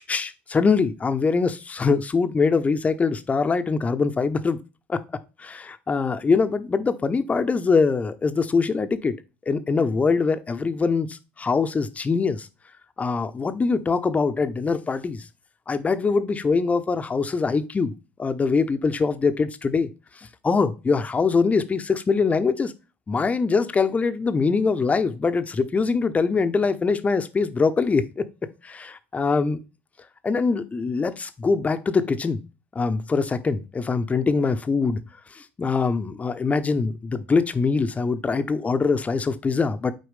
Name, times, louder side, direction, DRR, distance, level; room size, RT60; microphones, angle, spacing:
voice 1, 0.0-4.6 4.9-5.0 5.4-9.2 9.5-12.5 13.0-15.2 15.7-17.9 18.2-19.9 20.4-22.7 23.1-28.3 28.6-29.6 30.2-32.4 32.7-35.0 35.3-39.9, left 4 dB, 25° left, 0.8 m, -23 dB
7.8 x 4.7 x 3.4 m
figure-of-eight pair, 65°, 6 cm